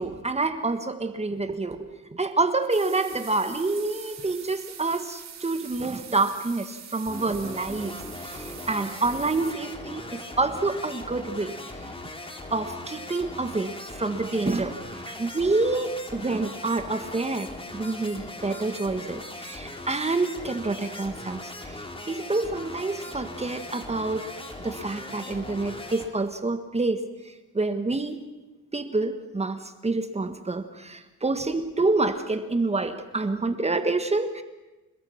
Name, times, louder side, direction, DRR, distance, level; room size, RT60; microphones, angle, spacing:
voice 1, 0.0-11.9 12.5-24.3 24.6-28.2 28.7-34.4, right 3 dB, 20° right, 9 dB, 1.7 m, -28 dB
sound 1, 2.7-9.5, right 8 dB, 60° right, 3.3 m, -44 dB
sound 2, 7.1-26.1, left 2 dB, 20° left, 3.5 m, -39 dB
29.0 x 20.5 x 6.0 m, 1.1 s
cardioid pair, 90°, 30 cm